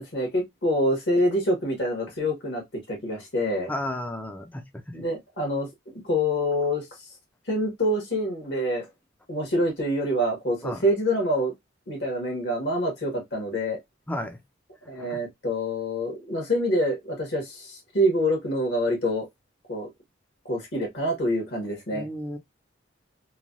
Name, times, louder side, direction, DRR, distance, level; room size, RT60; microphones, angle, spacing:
voice 1, 0.0-2.6 2.9-3.7 4.9-5.7 6.0-6.8 7.5-8.8 9.3-11.5 11.9-13.8 14.9-19.3 19.7-19.9 20.4-22.1, equal, 65° left, 1.2 m, -26 dB
voice 2, 3.7-5.0 10.6-10.8 14.1-14.4 15.0-15.2 21.9-22.4, left 1 dB, 10° left, 0.4 m, -33 dB
3.1 x 2.2 x 2.5 m
head